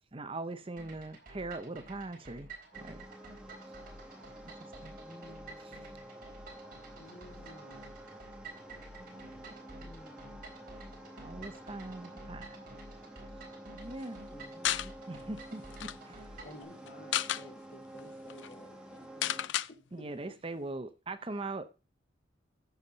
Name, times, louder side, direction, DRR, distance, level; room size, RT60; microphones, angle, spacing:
voice 1, 0.1-2.5 2.8-3.0 4.8-4.9 5.6-5.8 9.0-9.5 11.2-12.6 13.7-14.2 15.1-16.3 19.9-21.7, right 2 dB, 30° right, 0.7 m, -41 dB
sound 1, 0.8-16.6, right 2 dB, 50° right, 3.9 m, -51 dB
sound 2, 2.7-19.5, right 1 dB, 5° right, 1.9 m, -50 dB
voice 2, 5.0-6.1 9.8-10.4 14.3-15.0, left 1 dB, 15° left, 0.4 m, -54 dB
voice 3, 7.0-8.0 16.4-20.1 21.5-21.7, left 1 dB, 45° left, 3.8 m, -53 dB
sound 3, 14.6-14.9 15.4-15.5 15.7-16.0 16.9-17.4 18.0-18.1 18.3-18.5 19.2-19.7, left 11 dB, 70° left, 0.5 m, -32 dB
14.0 x 7.1 x 4.0 m
head